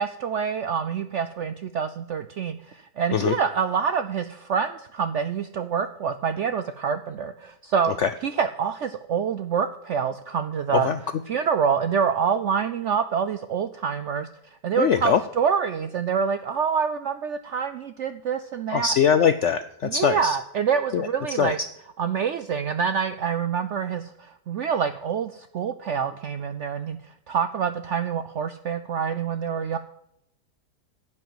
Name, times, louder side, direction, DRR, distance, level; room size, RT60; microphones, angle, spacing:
voice 1, 0.0-7.9 8.2-14.3 14.6-19.0 19.8-21.6 22.0-27.0 27.3-29.8, right 7 dB, 70° right, 11 dB, 0.7 m, -26 dB
voice 2, 14.8-15.2 18.7-20.3 20.9-21.1 21.4-21.5, left 8 dB, 70° left, 12 dB, 0.6 m, -21 dB
11.0 x 7.6 x 7.7 m, 0.77 s
omnidirectional pair, 1.8 m